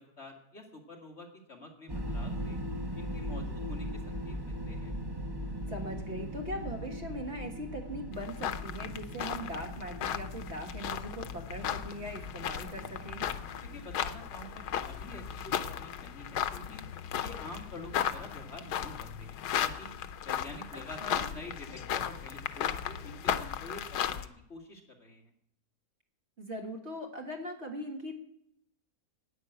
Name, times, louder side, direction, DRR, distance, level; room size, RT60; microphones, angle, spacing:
voice 1, 0.0-2.6 3.0-4.9 13.6-16.8 17.2-19.9 20.2-25.2, left 2 dB, 45° left, 0 dB, 2.2 m, -48 dB
sound 1, 1.9-15.9, equal, 20° right, 0.8 m, -40 dB
voice 2, 5.7-13.3 21.0-21.2 26.4-28.2, equal, 45° right, 2 dB, 1.8 m, -40 dB
sound 2, 8.1-24.3, left 9 dB, 85° left, 1.3 m, -36 dB
11.0 x 9.5 x 7.9 m, 0.75 s
omnidirectional pair, 1.7 m